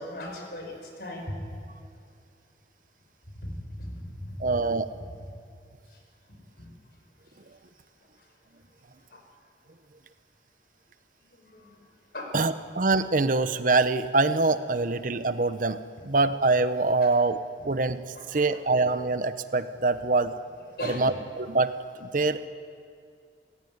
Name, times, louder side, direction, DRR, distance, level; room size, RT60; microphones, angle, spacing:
voice 1, 0.0-1.4 6.6-6.7 9.1-9.2 11.5-11.8 12.1-12.3 17.0-17.1 18.2-18.4 20.8-21.1, left 1 dB, 60° left, 2 dB, 5.4 m, -38 dB
voice 2, 4.4-4.9 12.3-17.4 17.6-18.0 18.3-20.3 20.8-21.7 22.0-22.5, right 3 dB, 50° right, 12 dB, 0.9 m, -24 dB
30.0 x 15.5 x 9.6 m, 2.3 s
head